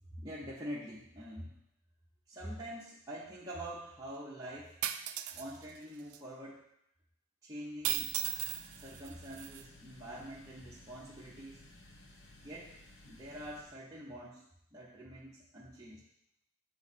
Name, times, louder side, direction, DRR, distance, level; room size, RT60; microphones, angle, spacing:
voice 1, 0.1-1.6 2.3-4.8 5.3-6.7 7.4-8.1 8.8-11.6 12.4-12.8 13.1-14.5 14.7-16.0, equal, 15° right, -7 dB, 0.7 m, -45 dB
sound 1, 4.8-5.4 6.1-6.2 7.8-9.6, right 12 dB, 85° right, 0.4 m, -36 dB
sound 2, 7.9-13.6, left 1 dB, 55° left, 0.9 m, -57 dB
7.2 x 3.3 x 4.1 m, 0.75 s
head